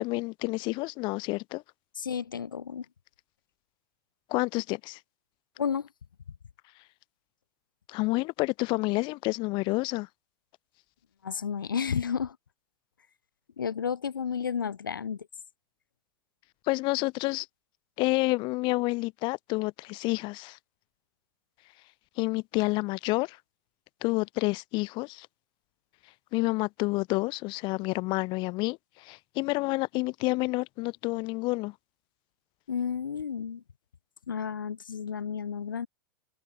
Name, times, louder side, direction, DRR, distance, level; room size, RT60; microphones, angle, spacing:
voice 1, 0.0-1.6 4.3-5.0 7.9-10.1 16.7-17.5 18.0-20.6 22.2-23.4 24.0-25.3 26.3-31.7, left 24 dB, 45° left, 3.1 m, -29 dB
voice 2, 2.0-2.8 5.6-5.9 11.2-12.4 13.6-15.3 32.7-33.6 34.3-35.9, left 7 dB, 90° left, 4.9 m, -32 dB
hypercardioid pair, 105°, 11 cm